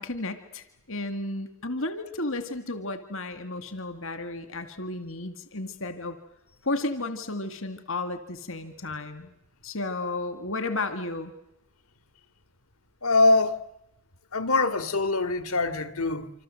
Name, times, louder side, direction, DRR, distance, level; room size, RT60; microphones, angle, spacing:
voice 1, 0.0-6.2 6.6-9.3 9.6-11.3, left 2 dB, 65° left, 2.1 m, -33 dB
voice 2, 13.0-13.6 14.3-16.3, left 2 dB, 85° left, 2.2 m, -23 dB
27.5 x 26.5 x 7.7 m
head